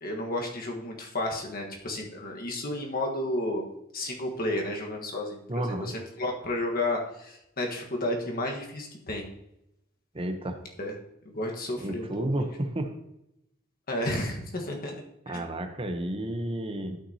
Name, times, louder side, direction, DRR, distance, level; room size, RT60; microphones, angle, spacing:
voice 1, 0.0-3.7 3.9-9.2 10.8-10.9 11.2-12.4 13.9-14.9 15.3-15.4, left 1 dB, 45° left, 1 dB, 1.4 m, -32 dB
voice 2, 5.5-5.9 10.1-10.6 11.8-12.9 15.3-17.0, right 1 dB, 30° right, 6 dB, 0.8 m, -31 dB
12.5 x 5.8 x 2.8 m, 0.84 s
head